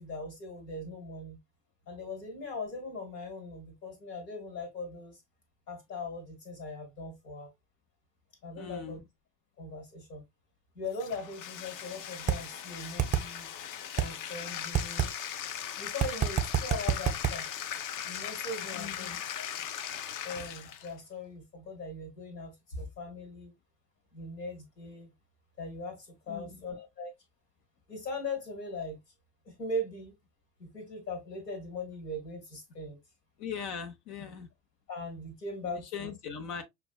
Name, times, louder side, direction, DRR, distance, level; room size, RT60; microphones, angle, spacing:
voice 1, 0.0-1.4 1.9-5.2 5.7-7.5 8.4-9.0 9.6-10.2 10.7-13.5 14.0-15.1 15.5-17.5 18.1-19.5 20.2-23.5 24.1-25.1 25.6-27.1 27.9-29.0 29.4-30.1 30.6-33.0 34.9-36.1, left 2 dB, 90° left, 1.6 m, -40 dB
voice 2, 8.6-9.0 18.7-19.1 19.6-19.7 26.3-26.6 33.4-34.5 35.6-36.6, left 7 dB, 70° left, 0.8 m, -40 dB
Bathtub (filling or washing), 10.9-20.9, left 9 dB, 45° left, 0.5 m, -39 dB
sound 1, 12.3-12.4 13.0-13.2 14.0-14.1 14.7-15.1 16.0-17.3, right 10 dB, 15° right, 0.5 m, -26 dB
5.8 x 2.3 x 2.2 m
hypercardioid pair, 70°, 47 cm